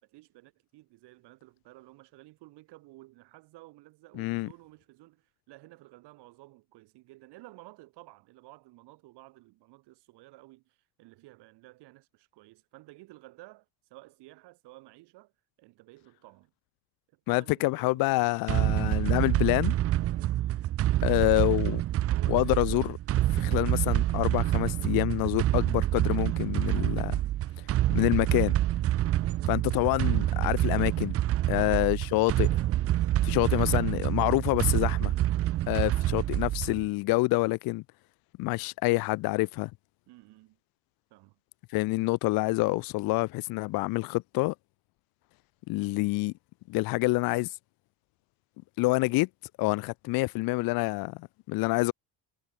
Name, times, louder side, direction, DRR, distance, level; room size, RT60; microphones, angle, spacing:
voice 1, 0.0-15.3 15.6-16.5 17.1-18.4 20.9-22.7 29.6-29.8 31.5-32.0 33.5-33.6 35.5-35.8 40.1-40.6 41.1-41.4 51.7-51.9, right 20 dB, 75° right, 2.8 m, -54 dB
voice 2, 4.2-4.5 17.3-19.7 21.0-21.8 22.3-23.0 23.3-27.2 27.9-28.5 29.5-31.1 31.5-32.5 33.2-35.1 35.7-37.8 38.4-39.7 41.7-44.5 45.7-46.3 46.7-47.6 48.8-49.3 49.6-51.9, left 22 dB, 60° left, 0.5 m, -27 dB
sound 1, 18.5-36.9, right 14 dB, 35° right, 0.4 m, -27 dB
cardioid pair, 130°, 41 cm